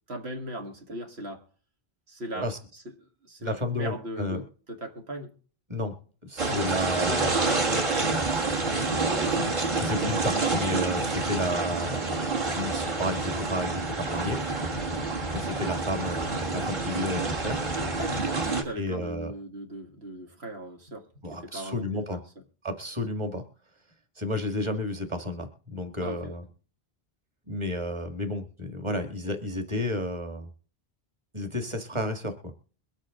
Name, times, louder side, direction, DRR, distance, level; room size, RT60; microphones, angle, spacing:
voice 1, 0.1-1.4 2.1-2.5 3.2-5.3 6.4-8.3 8.9-9.8 15.4-15.7 18.4-21.8 26.0-26.4, right 1 dB, 90° right, 2.1 m, -38 dB
voice 2, 3.4-4.4 5.7-5.9 6.2-7.5 9.8-12.2 12.5-14.4 15.3-17.6 18.8-19.3 21.2-22.2 22.6-23.4 24.2-26.4 27.5-30.5 31.3-32.5, left 1 dB, 30° right, 1.9 m, -32 dB
sound 1, 6.4-18.6, right 3 dB, 50° right, 2.1 m, -28 dB
22.5 x 8.2 x 3.7 m
omnidirectional pair, 1.0 m